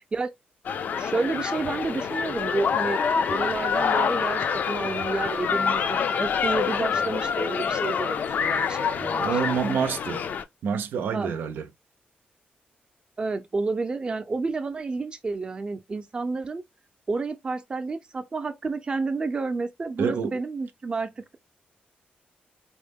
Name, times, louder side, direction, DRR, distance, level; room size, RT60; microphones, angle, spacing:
sound 1, 0.6-10.4, left 6 dB, 60° left, 0.4 m, -26 dB
voice 1, 1.0-9.5 11.1-11.3 13.2-16.6 17.1-21.4, right 3 dB, 25° right, 0.6 m, -30 dB
voice 2, 9.2-10.2 10.6-11.7 20.0-20.4, right 6 dB, 90° right, 0.5 m, -27 dB
4.4 x 2.1 x 3.5 m
wide cardioid pair, 155°, 3 cm